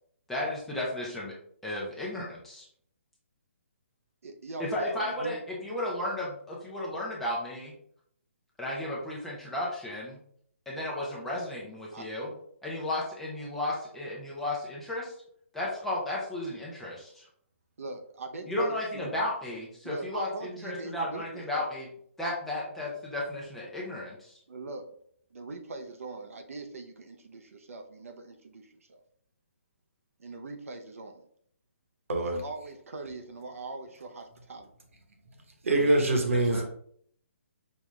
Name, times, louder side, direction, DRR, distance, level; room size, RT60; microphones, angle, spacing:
voice 1, 0.3-1.3 1.6-2.7 4.6-7.7 8.6-10.2 10.7-12.3 12.6-15.1 15.5-17.2 18.5-21.9 22.2-24.3 35.8-36.6, left 1 dB, 5° left, -5 dB, 0.4 m, -34 dB
voice 2, 4.2-5.4 11.9-12.1 17.8-19.0 19.8-21.7 24.5-24.8 25.3-29.0 30.2-31.2 32.2-34.7, right 3 dB, 90° right, 4 dB, 0.6 m, -42 dB
voice 3, 32.1-32.4 35.6-36.7, right 2 dB, 70° right, 3 dB, 1.1 m, -24 dB
5.2 x 2.3 x 3.1 m, 0.65 s
hypercardioid pair, 170°, 7 cm